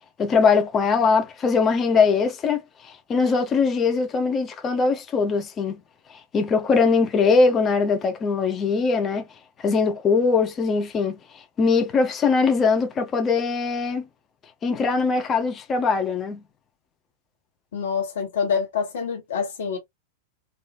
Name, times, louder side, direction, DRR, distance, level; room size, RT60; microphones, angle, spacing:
voice 1, 0.2-5.8 6.1-9.3 9.6-14.1 14.6-16.4, left 4 dB, 25° left, 0.6 m, -21 dB
voice 2, 17.7-19.8, left 6 dB, 60° left, 1.3 m, -26 dB
3.1 x 2.6 x 2.2 m
figure-of-eight pair, 90°, 0 cm